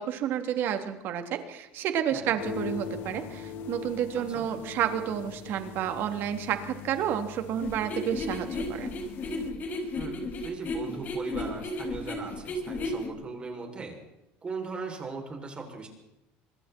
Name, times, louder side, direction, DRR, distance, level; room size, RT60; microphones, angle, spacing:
voice 1, 0.0-8.9, right 9 dB, 55° right, 7 dB, 3.3 m, -30 dB
voice 2, 2.1-2.4 4.1-4.4 10.0-14.0 14.4-15.9, right 4 dB, 25° right, 2 dB, 7.0 m, -38 dB
sound 1, 2.4-9.5, left 6 dB, 60° left, 2.6 m, -41 dB
sound 2, 7.6-13.1, left 2 dB, 40° left, 5.9 m, -34 dB
26.5 x 21.5 x 4.6 m, 0.91 s
cardioid pair, 125°, 4 cm